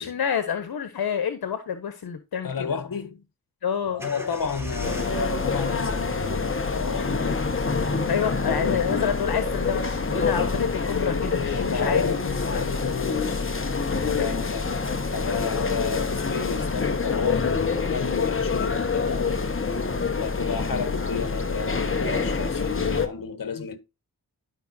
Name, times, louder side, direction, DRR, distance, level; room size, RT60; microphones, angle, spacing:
voice 1, 0.0-2.5 3.6-4.0 8.1-12.0, left 7 dB, 80° left, 1.3 m, -28 dB
voice 2, 2.4-3.2 3.9-7.5 8.1-8.7 11.6-13.5 14.0-14.8 15.1-19.5 20.1-23.8, left 6 dB, 65° left, 1.6 m, -32 dB
sound 1, 4.0-11.0, equal, 5° right, 3.3 m, -41 dB
sound 2, 4.8-23.1, left 4 dB, 35° left, 1.5 m, -26 dB
12.0 x 5.7 x 2.8 m
cardioid pair, 60°, 36 cm